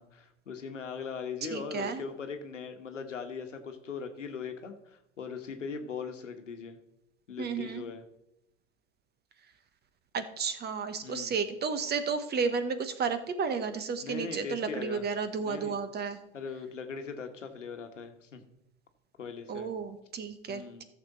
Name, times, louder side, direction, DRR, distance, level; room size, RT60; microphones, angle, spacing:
voice 1, 0.0-6.8 7.3-8.0 11.0-11.3 14.0-15.0 15.4-15.8 16.3-18.4 19.2-19.7 20.5-20.8, left 5 dB, 85° left, 7 dB, 1.3 m, -40 dB
voice 2, 1.5-2.0 7.4-7.8 10.1-16.2 19.5-20.8, right 5 dB, 25° right, 11 dB, 1.1 m, -32 dB
14.0 x 6.8 x 4.1 m, 0.87 s
hypercardioid pair, 90°, 36 cm